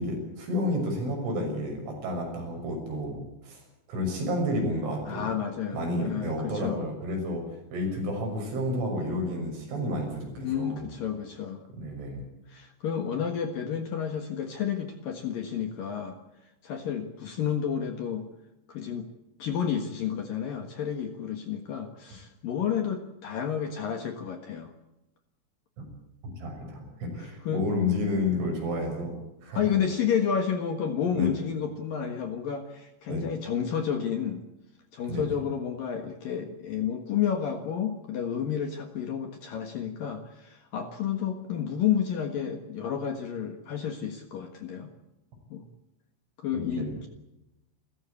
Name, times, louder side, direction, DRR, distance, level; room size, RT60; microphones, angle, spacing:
voice 1, 0.0-3.6 3.9-5.3 5.7-10.9 11.8-12.2 25.8-25.9 26.2-29.2 29.4-29.6 31.1-31.3 33.1-33.2 35.1-35.3 46.5-46.9, left 1 dB, 65° right, 2 dB, 8.7 m, -31 dB
voice 2, 5.1-6.8 10.4-11.6 12.5-16.2 16.6-18.3 18.7-19.1 19.4-24.7 27.2-27.7 29.5-34.4 34.9-44.9 45.5-45.7 46.4-47.1, left 8 dB, 60° left, 7 dB, 2.4 m, -31 dB
29.0 x 15.0 x 8.5 m, 0.89 s
omnidirectional pair, 6.0 m